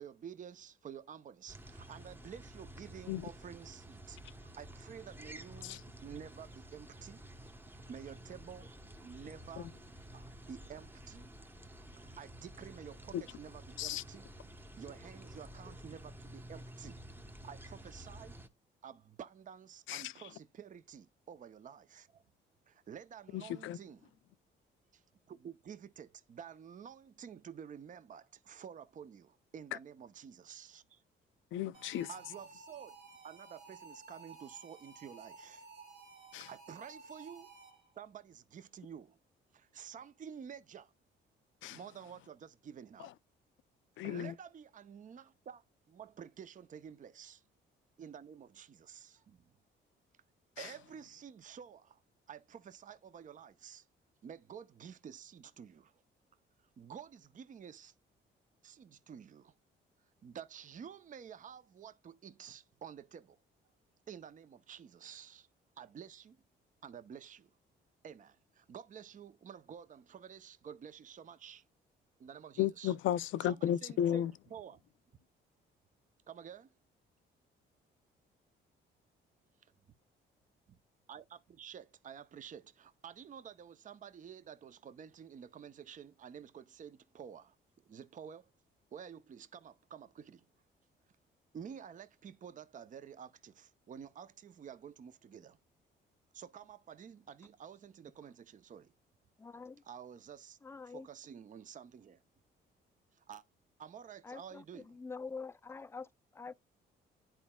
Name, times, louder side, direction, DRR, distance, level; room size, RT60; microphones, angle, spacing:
voice 1, 0.0-7.2 7.9-8.7 9.0-9.7 10.1-11.3 12.0-14.3 14.8-17.0 17.4-18.4 18.8-22.2 22.7-24.1 24.9-25.0 25.3-31.0 32.1-33.0 33.2-35.7 36.4-37.5 38.0-39.2 39.5-40.9 41.7-43.1 44.0-47.4 48.0-49.5 50.6-52.0 52.3-53.9 54.2-56.0 56.8-57.9 58.6-59.5 60.2-63.4 64.1-65.5 65.8-66.4 66.8-67.5 68.0-71.6 72.2-72.9 73.4-74.2 74.5-74.8 76.3-76.7 79.6-79.7 80.7-80.8 81.1-87.6 87.9-88.5 88.9-90.5 91.5-95.6 96.3-98.9 99.8-100.6 100.9-102.2 103.1-103.4 103.8-105.0, right 8 dB, 40° right, 0.6 m, -50 dB
sound 1, 1.5-18.5, right 1 dB, 10° right, 0.9 m, -51 dB
voice 2, 23.3-23.8 31.5-32.1 36.3-36.5 41.6-41.8 44.0-44.3 50.6-50.7 72.6-74.3, left 11 dB, 75° left, 0.4 m, -34 dB
sound 2, 31.7-38.0, right 4 dB, 85° right, 1.9 m, -54 dB
voice 3, 99.4-99.8 100.6-101.1 104.2-106.1 106.3-106.5, left 4 dB, 15° left, 0.3 m, -45 dB
10.5 x 4.4 x 2.2 m
cardioid pair, 90°, 20 cm